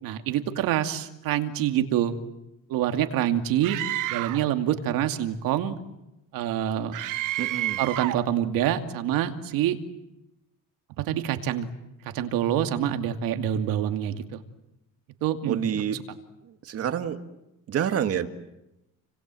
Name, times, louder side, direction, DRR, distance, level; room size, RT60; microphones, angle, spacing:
voice 1, 0.0-2.1 2.7-3.8 4.1-5.8 6.3-6.9 7.8-9.8 11.1-11.7 12.0-14.4 15.2-15.8, right 11 dB, 85° right, 7 dB, 2.5 m, -26 dB
Screaming, 3.6-4.5 6.9-8.3, right 15 dB, 65° right, 1.2 m, -30 dB
voice 2, 7.4-7.8 15.5-16.0 16.6-17.2 17.7-18.3, right 9 dB, 45° right, 8 dB, 2.1 m, -27 dB
29.5 x 26.0 x 7.8 m, 0.91 s
cardioid pair, 155°, 33 cm